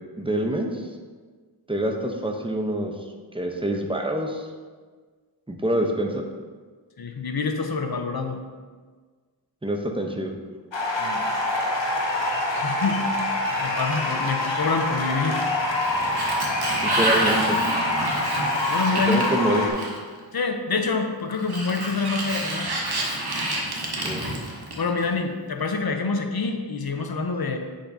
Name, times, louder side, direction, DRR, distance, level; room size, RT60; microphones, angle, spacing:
voice 1, 0.2-0.8 1.7-2.9 3.3-4.5 5.5-6.2 9.6-10.3 16.8-17.6 19.0-19.8 24.0-24.2, right 1 dB, 10° right, 2 dB, 0.7 m, -26 dB
voice 2, 7.0-8.4 11.0-11.3 12.5-13.0 13.6-15.5 18.7-19.3 20.3-22.7 24.8-27.6, left 4 dB, 55° left, 5 dB, 0.8 m, -26 dB
sound 1, 10.7-19.7, left 1 dB, 75° left, 1.2 m, -25 dB
Sliding door, 15.6-20.2 21.3-25.0, right 1 dB, 55° right, 1.2 m, -28 dB
7.9 x 6.5 x 2.7 m, 1.5 s
wide cardioid pair, 75°, 45 cm